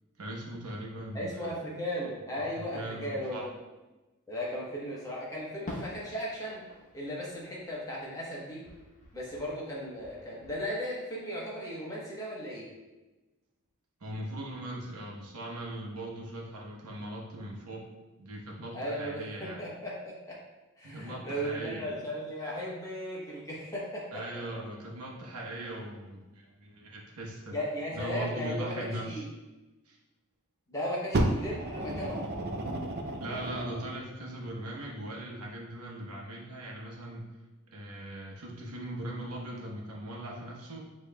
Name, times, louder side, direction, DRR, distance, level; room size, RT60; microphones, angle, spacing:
voice 1, 0.2-1.6 2.4-2.5 2.7-3.5 14.0-17.8 18.2-19.7 20.8-21.9 24.1-27.6 27.9-29.3 29.9-30.0 33.2-37.3 37.7-41.0, right 1 dB, 85° right, -2 dB, 0.9 m, -40 dB
voice 2, 1.1-3.5 4.3-6.6 6.9-8.6 9.1-12.7 18.7-20.4 20.8-24.2 27.5-29.3 30.7-32.2, equal, 15° left, -5 dB, 1.0 m, -36 dB
Fireworks, 5.7-8.3 8.6-10.5, left 1 dB, 35° left, 0.9 m, -47 dB
Fire, 31.1-34.0 34.8-34.9, right 1 dB, 45° right, 0.4 m, -32 dB
7.2 x 3.0 x 2.3 m, 1.1 s
head